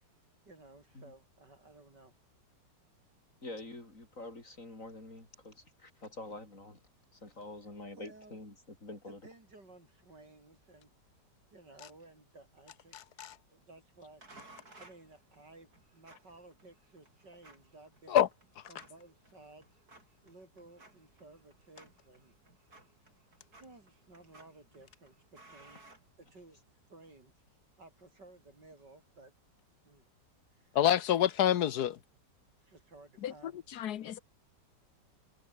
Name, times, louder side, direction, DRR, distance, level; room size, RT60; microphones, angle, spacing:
voice 1, 0.5-2.1 7.9-8.4 9.1-10.9 11.5-13.1 13.5-14.2 14.8-18.2 18.7-19.7 20.2-22.3 23.6-25.8 26.2-26.6 26.9-27.3 27.8-29.3 29.9-30.1 30.5-30.8 32.6-33.6, right 2 dB, 75° right, 7.2 m, -56 dB
voice 2, 3.4-6.8 7.1-9.2, left 2 dB, 45° left, 6.7 m, -46 dB
sound 1, 14.2-26.7, right 2 dB, 60° right, 6.4 m, -60 dB
voice 3, 30.7-32.0 33.2-33.3 33.8-34.2, left 11 dB, 65° left, 1.4 m, -27 dB
omnidirectional pair, 1.9 m